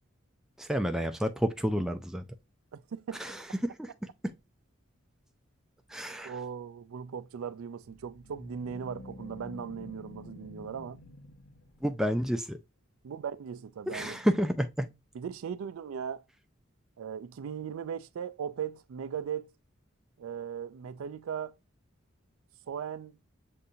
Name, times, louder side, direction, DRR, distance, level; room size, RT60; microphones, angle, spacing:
voice 1, 0.6-2.2 3.1-4.3 5.9-6.4 11.8-12.6 13.9-14.9, equal, ahead, 0.3 m, -30 dB
voice 2, 2.7-3.2 6.2-11.0 13.0-14.2 15.2-16.2 17.0-19.5 20.2-21.6 22.7-23.2, right 7 dB, 85° right, 0.4 m, -38 dB
sound 1, 7.8-12.2, left 2 dB, 85° left, 0.7 m, -49 dB
6.7 x 2.6 x 2.6 m
head